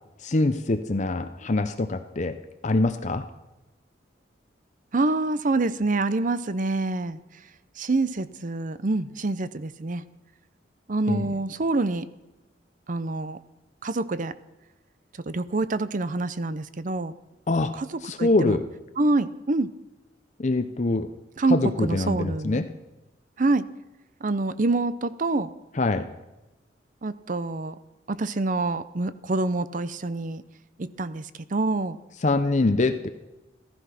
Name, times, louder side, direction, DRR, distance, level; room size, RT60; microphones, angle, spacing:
voice 1, 0.2-2.4 2.6-3.2 11.1-11.2 17.5-17.7 18.0-18.7 20.4-21.1 21.5-22.7 25.8-26.1 32.2-33.1, left 2 dB, 40° left, 9 dB, 0.7 m, -24 dB
voice 2, 4.9-7.2 7.8-10.0 10.9-12.1 12.9-13.4 13.8-14.3 15.3-17.1 17.7-18.6 19.0-19.7 21.4-22.6 23.4-23.7 24.2-25.5 27.0-27.7 28.1-30.4 30.8-32.0, right 2 dB, 45° right, 14 dB, 0.6 m, -26 dB
15.0 x 14.5 x 5.9 m, 1.0 s
head